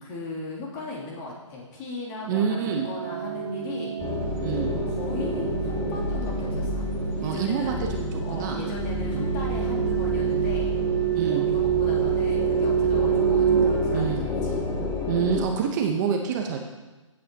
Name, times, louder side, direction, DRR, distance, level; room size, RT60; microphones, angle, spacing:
voice 1, 0.0-2.6 2.8-3.9 4.9-6.9 7.2-7.8 8.2-10.7 11.3-14.6, left 2 dB, 35° left, -4 dB, 3.1 m, -37 dB
sound 1, 2.2-14.9, right 9 dB, 55° right, 0.5 m, -27 dB
voice 2, 2.3-2.9 4.4-4.7 7.2-8.1 8.3-8.6 9.0-9.2 11.1-11.4 13.9-14.2 15.1-16.6, right 7 dB, 35° right, 3 dB, 1.0 m, -27 dB
sound 2, 4.0-15.4, left 3 dB, 15° left, 1.7 m, -30 dB
16.0 x 8.5 x 3.0 m, 1.2 s
hypercardioid pair, 135°, 17 cm